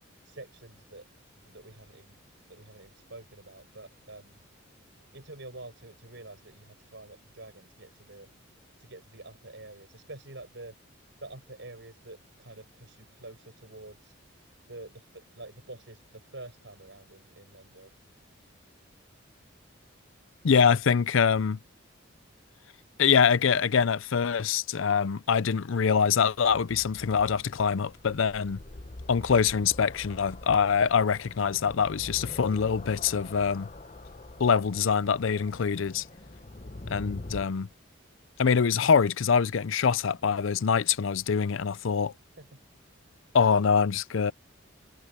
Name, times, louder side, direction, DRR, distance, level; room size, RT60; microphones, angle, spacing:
voice 1, 0.2-1.1 1.4-2.2 2.5-4.4 5.1-8.3 8.8-10.8 11.2-14.1 14.7-17.9 42.4-42.6, right 2 dB, 60° right, 6.7 m, -47 dB
voice 2, 20.4-21.6 23.0-28.6 29.1-33.7 34.4-36.0 36.9-37.7 38.4-42.1 43.3-44.3, left 6 dB, 70° left, 0.5 m, -24 dB
sound 1, 26.4-37.5, left 2 dB, 35° left, 0.8 m, -44 dB
head